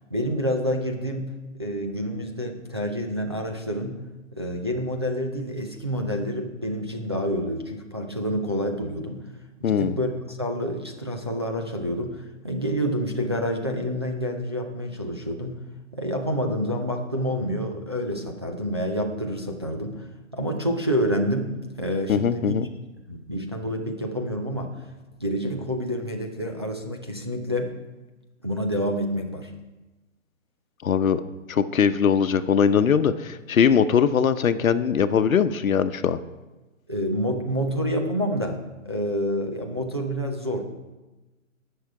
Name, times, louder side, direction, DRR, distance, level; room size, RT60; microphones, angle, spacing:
voice 1, 0.1-4.0 4.3-9.2 9.6-15.6 15.9-20.1 20.3-22.6 23.1-24.7 25.2-27.7 28.4-29.5 36.9-40.6, equal, 20° right, 1 dB, 0.5 m, -28 dB
voice 2, 9.6-10.0 22.1-22.7 30.8-31.2 31.5-36.2, left 7 dB, 85° left, 12 dB, 0.9 m, -21 dB
18.0 x 6.4 x 4.8 m, 1.1 s
hypercardioid pair, 175°, 40 cm